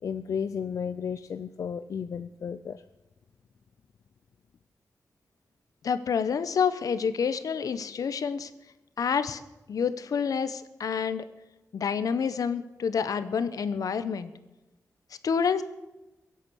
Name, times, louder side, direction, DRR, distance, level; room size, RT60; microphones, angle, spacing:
voice 1, 0.0-2.8, left 7 dB, 60° left, 11 dB, 0.4 m, -33 dB
voice 2, 5.8-8.5 9.0-9.4 9.7-11.2 11.7-14.3 15.2-15.6, left 6 dB, 75° left, 13 dB, 0.9 m, -28 dB
23.0 x 8.3 x 6.3 m, 1.0 s
wide cardioid pair, 180°, 6 cm